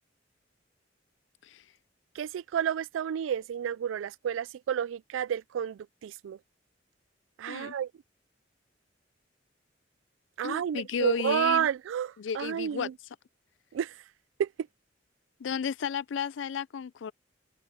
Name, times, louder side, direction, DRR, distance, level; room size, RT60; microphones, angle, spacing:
voice 1, 2.2-6.4 7.4-7.9 10.4-12.9 13.7-13.9 14.4-14.5, right 9 dB, 85° right, 0.3 m, -30 dB
voice 2, 10.4-11.7 12.2-12.9 15.4-17.1, left 7 dB, 75° left, 0.4 m, -33 dB
head